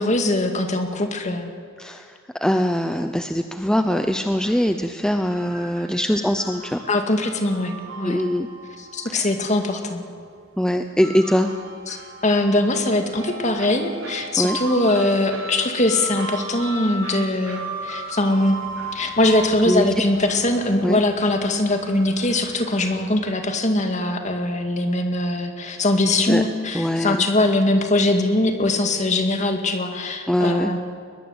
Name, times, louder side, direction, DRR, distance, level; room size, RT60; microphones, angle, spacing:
voice 1, 0.0-1.5 6.9-8.2 8.8-10.0 11.9-12.0 12.2-18.6 18.9-30.8, left 2 dB, 35° left, 5 dB, 2.1 m, -21 dB
voice 2, 2.4-6.8 8.0-8.5 9.1-9.3 10.6-11.5 14.4-14.6 19.7-19.9 20.8-21.0 26.2-26.4 26.7-27.2 30.3-30.7, equal, 5° left, 7 dB, 0.6 m, -22 dB
sound 1, 3.8-23.1, right 3 dB, 70° right, 4.2 m, -37 dB
21.5 x 21.0 x 8.1 m, 2.1 s
head